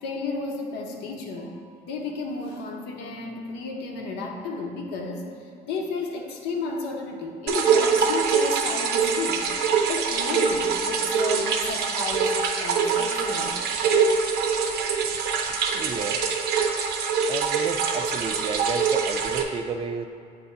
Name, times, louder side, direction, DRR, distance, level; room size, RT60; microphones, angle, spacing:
voice 1, 0.0-1.6 1.8-5.3 5.6-9.5 9.9-12.3 12.6-13.6 16.0-16.1, left 3 dB, 85° left, 2 dB, 0.8 m, -32 dB
sound 1, 7.5-19.4, right 6 dB, 75° right, 0.6 m, -24 dB
voice 2, 15.7-16.2 17.3-20.1, right 5 dB, 35° right, 8 dB, 0.4 m, -32 dB
7.4 x 2.8 x 5.6 m, 2.6 s
cardioid pair, 110°, 17 cm